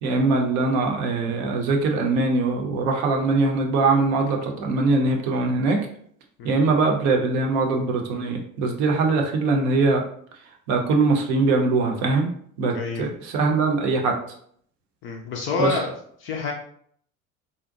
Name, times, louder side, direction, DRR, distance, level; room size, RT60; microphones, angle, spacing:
voice 1, 0.0-5.9 6.4-10.0 10.7-12.3 12.6-14.1 15.6-15.8, right 3 dB, 45° right, 2 dB, 0.6 m, -22 dB
voice 2, 12.7-13.1 15.0-15.9 16.2-16.5, left 4 dB, 30° left, 1 dB, 0.4 m, -27 dB
2.5 x 2.1 x 2.5 m, 0.63 s
figure-of-eight pair, 70°, 41 cm